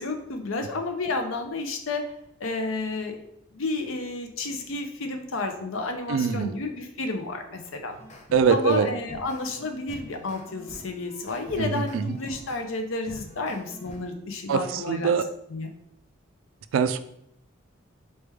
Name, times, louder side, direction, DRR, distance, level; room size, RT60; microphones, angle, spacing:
voice 1, 0.0-2.1 2.4-3.2 3.5-7.9 8.5-15.1 15.5-15.7, left 3 dB, 80° left, 5 dB, 0.6 m, -31 dB
voice 2, 6.1-6.6 8.3-8.9 11.6-12.2 14.5-15.3 16.7-17.0, right 6 dB, 85° right, 12 dB, 0.3 m, -23 dB
sound 1, 7.9-12.6 13.1-14.1, equal, 35° left, 0.6 m, -45 dB
4.2 x 3.3 x 3.4 m, 0.74 s
head